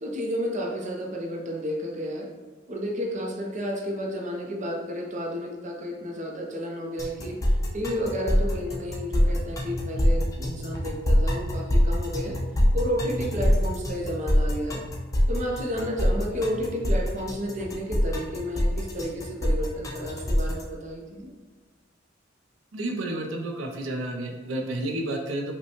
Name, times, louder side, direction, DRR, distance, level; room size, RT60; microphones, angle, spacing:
voice 1, 0.0-2.3 2.7-12.4 12.7-14.8 15.3-21.3, equal, 40° right, -1 dB, 0.6 m, -31 dB
sound 1, 7.0-20.6, equal, 20° left, 0.5 m, -24 dB
voice 2, 22.7-25.5, right 1 dB, 90° right, 1 dB, 0.5 m, -31 dB
5.2 x 2.2 x 2.9 m, 1.4 s
head